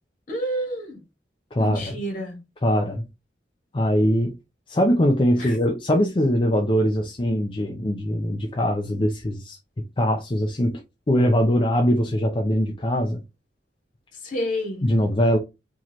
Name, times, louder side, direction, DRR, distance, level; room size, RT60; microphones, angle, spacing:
voice 1, 0.3-1.0 1.6-2.4 5.4-5.6 14.2-14.8, equal, 50° left, 2.1 m, -29 dB
voice 2, 1.5-1.9 2.6-3.0 3.7-4.3 4.7-9.6 10.0-10.8 11.1-13.2 14.8-15.4, equal, 30° left, 0.6 m, -22 dB
4.6 x 2.9 x 3.0 m
head